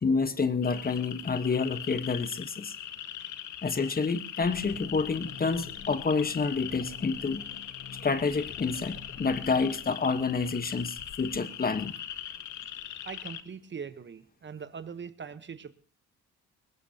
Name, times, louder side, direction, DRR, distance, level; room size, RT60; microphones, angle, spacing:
voice 1, 0.0-2.7 3.6-7.4 7.9-11.9, left 4 dB, 30° left, 11 dB, 1.2 m, -28 dB
sound 1, 0.6-13.4, left 10 dB, 75° left, 1.4 m, -41 dB
sound 2, 4.4-10.2, left 6 dB, 55° left, 1.2 m, -48 dB
voice 2, 13.0-15.8, right 6 dB, 40° right, 12 dB, 1.0 m, -41 dB
22.0 x 19.5 x 2.8 m, 0.38 s
cardioid pair, 90°, 30 cm